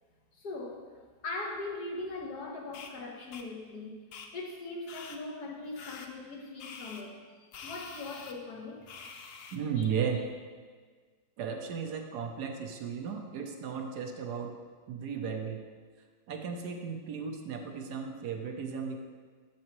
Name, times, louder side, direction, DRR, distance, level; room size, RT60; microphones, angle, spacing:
voice 1, 0.3-0.9 1.2-4.0 4.3-8.9 9.8-9.9, left 2 dB, 65° left, -1 dB, 1.6 m, -40 dB
sound 1, 2.7-2.9 3.3-3.4 4.1-4.3 4.9-5.2 5.8-6.1 6.6-7.0 7.5-8.3 8.9-9.6, left 5 dB, 90° left, 0.5 m, -46 dB
voice 2, 9.5-10.2 11.4-14.6 14.9-15.6 16.3-19.0, right 6 dB, 75° right, 4 dB, 1.3 m, -35 dB
10.0 x 6.3 x 3.1 m, 1.5 s
omnidirectional pair, 1.8 m